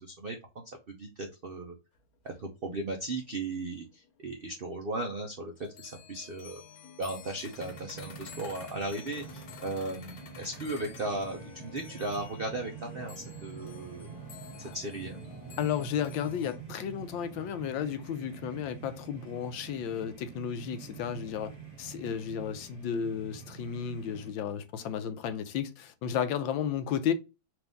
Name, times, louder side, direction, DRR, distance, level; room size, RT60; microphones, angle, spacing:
voice 1, 0.0-1.8 2.2-5.5 5.8-6.6 7.0-14.1 14.6-15.2, right 2 dB, 80° right, 0.5 m, -36 dB
sound 1, 2.0-2.1 2.2-4.2 4.5-4.7 5.1-5.2 5.6-16.6, left 7 dB, 55° left, 1.2 m, -50 dB
sound 2, 7.5-24.3, right 7 dB, 20° right, 1.4 m, -47 dB
voice 2, 15.6-27.1, left 8 dB, 80° left, 1.4 m, -33 dB
4.5 x 2.6 x 3.4 m
omnidirectional pair, 2.1 m